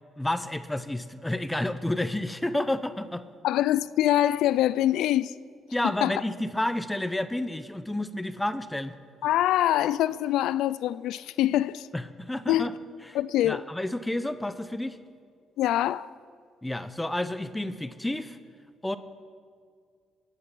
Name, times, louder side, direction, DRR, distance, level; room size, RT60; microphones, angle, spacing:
voice 1, 0.2-3.2 5.7-8.9 11.9-12.7 13.1-13.2 13.4-15.0 16.6-18.4 18.8-19.0, left 1 dB, 10° left, 0.8 m, -30 dB
voice 2, 3.4-5.3 5.8-6.2 9.2-11.9 12.5-12.7 13.1-13.6 15.6-16.1, left 13 dB, 90° left, 0.3 m, -24 dB
21.5 x 9.9 x 6.1 m
cardioid pair, 90°, 0 cm